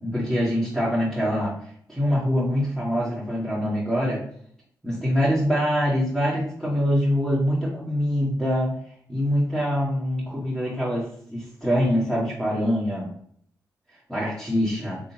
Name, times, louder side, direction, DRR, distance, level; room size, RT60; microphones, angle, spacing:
voice 1, 0.0-1.5 1.9-4.2 4.8-8.8 9.1-11.0 11.3-13.1 14.1-15.0, equal, 5° right, -9 dB, 1.6 m, -24 dB
3.7 x 3.2 x 2.9 m, 0.65 s
supercardioid pair, 50°, 8 cm